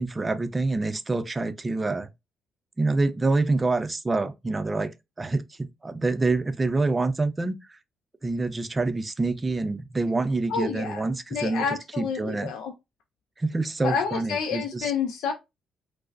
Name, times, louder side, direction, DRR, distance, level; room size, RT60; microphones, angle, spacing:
voice 1, 0.0-2.1 2.8-5.6 5.8-7.6 8.2-11.6 12.0-12.5 13.4-14.9, right 3 dB, 25° right, 0.4 m, -26 dB
voice 2, 10.5-11.0 11.3-12.7 13.8-15.3, left 6 dB, 85° left, 0.4 m, -29 dB
4.8 x 2.0 x 2.5 m
cardioid pair, 90°, 0 cm